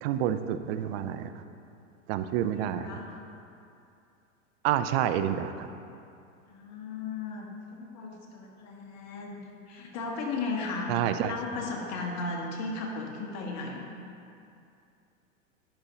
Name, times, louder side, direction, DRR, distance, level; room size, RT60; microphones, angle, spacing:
voice 1, 0.0-1.3 2.1-2.9 4.6-5.7 10.9-11.3, right 10 dB, 50° right, 10 dB, 0.5 m, -28 dB
voice 2, 2.6-3.2 6.5-10.9 11.2-13.8, left 3 dB, 40° left, 0 dB, 1.3 m, -36 dB
10.0 x 5.2 x 2.9 m, 2.6 s
hypercardioid pair, 100°, 40 cm